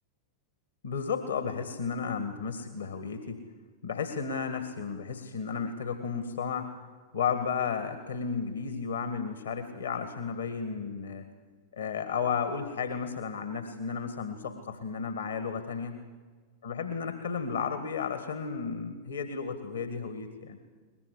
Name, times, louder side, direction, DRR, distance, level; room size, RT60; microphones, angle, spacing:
voice 1, 0.8-3.4 3.8-6.7 7.1-11.3 11.7-16.0 16.6-20.6, left 6 dB, 70° left, 9 dB, 1.8 m, -33 dB
22.5 x 20.5 x 9.8 m, 1.5 s
figure-of-eight pair, 90°, 0 cm